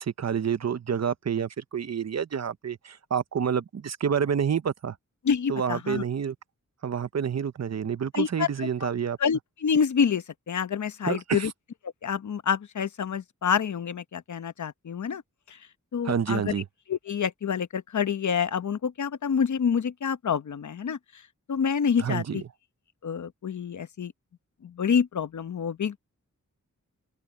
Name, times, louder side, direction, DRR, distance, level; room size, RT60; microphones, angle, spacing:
voice 1, 0.0-5.0 5.5-6.4 6.8-9.2 11.0-11.5 16.0-16.6 22.0-22.4, right 7 dB, 60° right, 0.8 m, -28 dB
voice 2, 5.2-6.0 8.1-8.9 9.2-11.5 12.0-15.2 15.5-15.6 15.9-16.5 16.9-21.2 21.5-22.4 23.0-24.1 24.6-26.0, left 7 dB, 70° left, 0.9 m, -27 dB
open air
wide cardioid pair, 90°, 30 cm